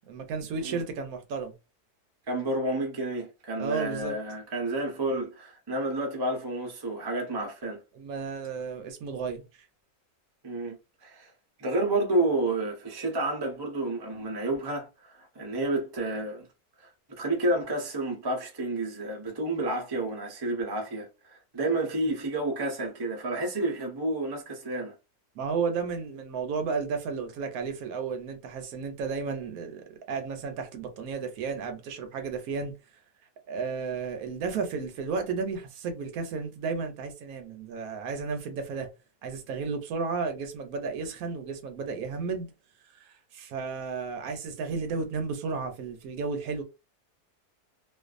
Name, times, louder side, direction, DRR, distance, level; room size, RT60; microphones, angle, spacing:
voice 1, 0.1-1.5 3.6-4.2 7.9-9.7 25.4-32.7 33.5-38.9 39.2-42.5 43.0-46.6, right 5 dB, 75° right, 1.0 m, -33 dB
voice 2, 2.3-7.8 10.4-10.8 11.0-11.3 11.6-16.5 16.8-24.9, right 2 dB, 35° right, 0.3 m, -30 dB
2.5 x 2.3 x 2.4 m
omnidirectional pair, 1.7 m